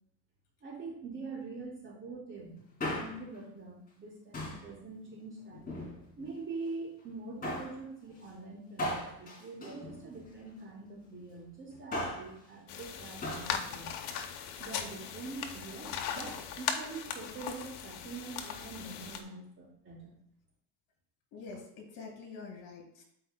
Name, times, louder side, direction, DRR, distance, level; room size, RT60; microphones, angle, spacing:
voice 1, 0.6-2.6 2.9-5.6 6.2-13.9 14.6-20.1, right 3 dB, 35° right, -4 dB, 2.8 m, -44 dB
Male speech man speaking, 2.6-3.4 4.3-4.7 5.5-6.3 7.4-7.8 8.8-10.4 11.7-12.3 13.2-13.5 13.8-13.9, left 1 dB, 25° left, 2.0 m, -38 dB
sound 1, 12.7-19.2, left 8 dB, 90° left, 0.9 m, -39 dB
voice 2, 21.3-23.0, left 4 dB, 65° left, 0 dB, 2.9 m, -46 dB
12.0 x 4.6 x 2.2 m, 0.72 s
cardioid pair, 145°, 36 cm